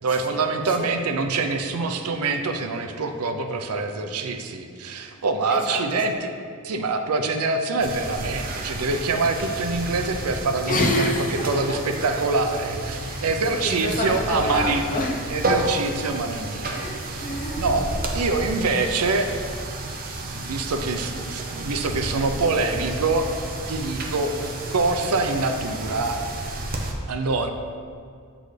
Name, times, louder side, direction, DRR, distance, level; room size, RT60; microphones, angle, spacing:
voice 1, 0.0-6.3 6.6-14.9 15.3-17.3 17.6-17.8 18.1-19.3 20.2-23.3 23.7-24.3 24.7-26.2 27.1-27.5, right 3 dB, 85° right, 6 dB, 0.6 m, -25 dB
voice 2, 5.5-6.0 10.7-11.8 12.9-15.2 15.9-16.1 16.7-17.7, left 1 dB, 35° left, -1 dB, 0.9 m, -28 dB
sound 1, 7.8-26.9, right 2 dB, 40° right, 0.7 m, -31 dB
7.9 x 6.2 x 3.3 m, 2.2 s
head